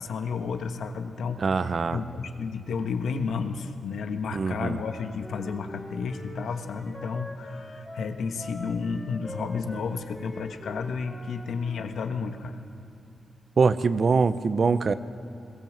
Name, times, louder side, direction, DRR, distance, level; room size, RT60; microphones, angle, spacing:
voice 1, 0.0-12.6, left 5 dB, 85° left, 6 dB, 1.3 m, -32 dB
voice 2, 1.4-2.0 4.3-4.8 13.6-14.9, right 4 dB, 50° right, 13 dB, 0.8 m, -23 dB
Wind instrument woodwind instrument, 4.8-12.2, left 1 dB, 15° left, 3.0 m, -43 dB
21.5 x 18.5 x 7.5 m, 2.5 s
wide cardioid pair, 110°, 0 cm